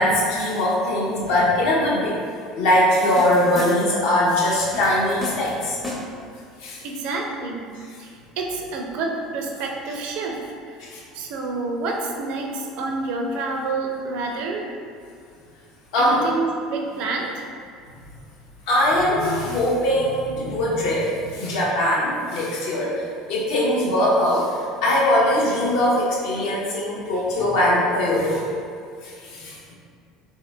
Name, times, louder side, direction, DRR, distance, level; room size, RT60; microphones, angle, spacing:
voice 1, 0.0-2.1 2.6-5.8 6.6-6.8 10.8-11.0 15.9-16.2 18.7-28.4 29.0-29.6, left 1 dB, 55° left, -5 dB, 0.7 m, -21 dB
sound 1, 2.9-4.1 4.7-6.3, left 1 dB, 5° left, 0.5 m, -34 dB
voice 2, 6.8-7.7 8.0-14.7 16.0-17.5, right 3 dB, 50° right, 1 dB, 0.4 m, -28 dB
3.5 x 2.7 x 2.2 m, 2.2 s
figure-of-eight pair, 65°, 2 cm